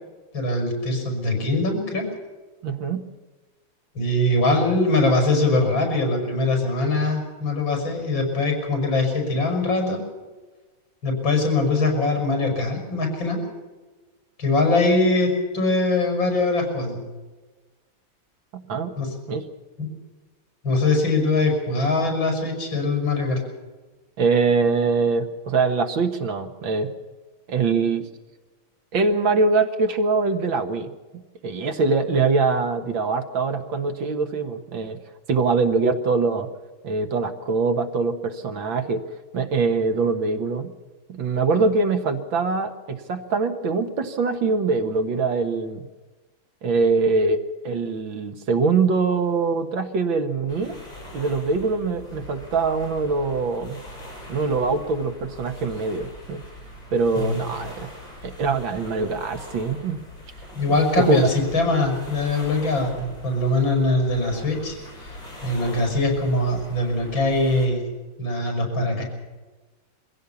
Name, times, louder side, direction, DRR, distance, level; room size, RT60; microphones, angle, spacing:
voice 1, 0.3-2.1 3.9-10.0 11.0-13.4 14.4-17.0 19.0-19.1 19.8-19.9 20.6-23.4 57.1-57.4 60.5-65.2 65.4-67.8 68.2-69.0, left 2 dB, 75° left, 4 dB, 6.6 m, -22 dB
voice 2, 2.6-3.1 18.5-18.9 19.3-19.4 24.2-26.9 27.5-28.1 28.9-30.9 31.4-35.0 35.3-36.5 36.8-39.0 39.3-40.7 41.1-45.9 46.6-50.8 51.1-53.8 54.3-56.4 56.9-57.9 58.2-60.0 61.0-61.2, right 4 dB, 75° right, 7 dB, 2.2 m, -23 dB
sound 1, 50.5-67.7, left 1 dB, 40° left, 7.9 m, -42 dB
23.5 x 16.0 x 7.1 m, 1.3 s
omnidirectional pair, 2.1 m